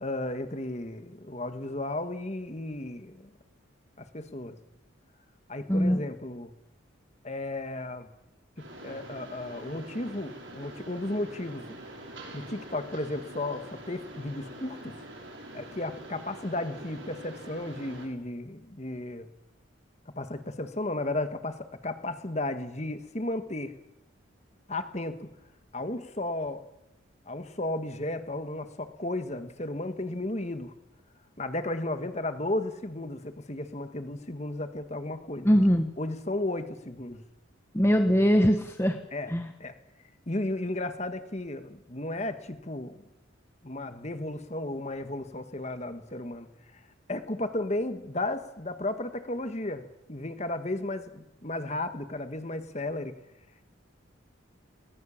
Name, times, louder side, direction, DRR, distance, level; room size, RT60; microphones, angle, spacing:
voice 1, 0.0-3.3 4.0-4.6 5.5-6.5 7.2-8.1 8.6-11.7 12.3-14.9 15.5-19.3 20.2-23.7 24.7-25.3 25.7-26.6 27.2-30.7 31.4-35.5 36.0-37.2 39.1-39.3 39.6-39.7 40.3-42.9 43.6-46.5 46.7-46.8 47.1-49.8 50.1-53.1, left 2 dB, 35° left, 9 dB, 1.6 m, -34 dB
voice 2, 5.7-6.0 35.4-35.9 37.7-39.0 39.3-39.4, equal, 15° left, 5 dB, 1.1 m, -22 dB
Mechanisms, 8.6-18.1, right 1 dB, 65° right, 5.3 m, -45 dB
20.5 x 20.0 x 7.2 m, 0.90 s
head